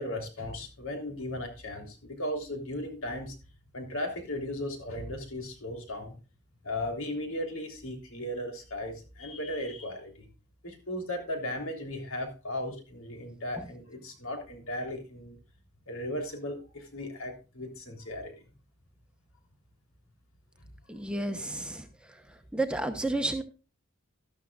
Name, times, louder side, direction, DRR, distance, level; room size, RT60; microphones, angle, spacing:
voice 1, 0.0-3.3 3.7-6.1 6.6-10.3 10.6-15.4 15.9-18.3, left 1 dB, 80° left, 3 dB, 3.3 m, -36 dB
voice 2, 20.9-21.8 22.5-23.4, right 2 dB, 5° right, 6 dB, 0.9 m, -31 dB
12.5 x 12.5 x 2.4 m, 0.33 s
head